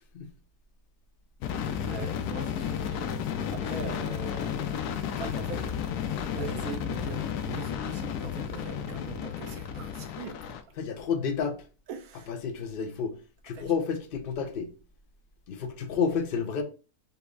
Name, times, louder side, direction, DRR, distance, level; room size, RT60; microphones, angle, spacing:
sound 1, 1.4-10.6, left 8 dB, 80° left, 1.1 m, -32 dB
voice 1, 1.8-4.7 5.2-5.7 6.3-10.6 11.9-12.3 13.5-13.7, right 7 dB, 70° right, 1.2 m, -42 dB
voice 2, 10.8-11.6 12.3-13.1 13.4-14.7 15.5-16.6, left 6 dB, 55° left, 0.6 m, -30 dB
5.6 x 2.1 x 3.9 m
omnidirectional pair, 1.7 m